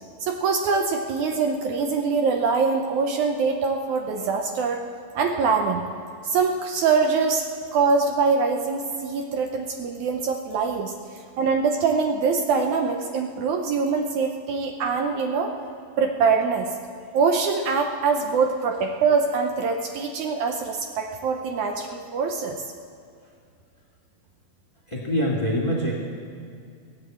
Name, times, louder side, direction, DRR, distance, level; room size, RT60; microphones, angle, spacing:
voice 1, 0.2-4.8 5.1-5.8 6.2-7.4 7.7-10.9 11.4-15.5 16.0-16.7 17.1-22.6, right 5 dB, 75° right, 4 dB, 2.0 m, -23 dB
voice 2, 24.9-25.9, equal, 15° left, -2 dB, 1.6 m, -24 dB
17.5 x 9.0 x 7.8 m, 2.3 s
omnidirectional pair, 3.8 m